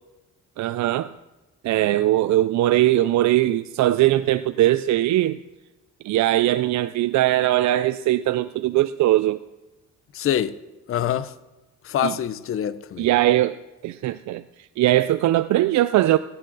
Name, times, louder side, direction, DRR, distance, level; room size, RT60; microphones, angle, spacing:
voice 1, 0.6-1.1 1.6-5.4 6.0-9.4 12.0-12.1 13.0-13.6 13.8-14.4 14.8-16.2, right 14 dB, 70° right, 0.4 m, -20 dB
voice 2, 10.1-10.5 10.9-11.3 11.8-13.1, left 10 dB, 45° left, 0.6 m, -25 dB
18.0 x 7.7 x 4.0 m
cardioid pair, 90°, 30 cm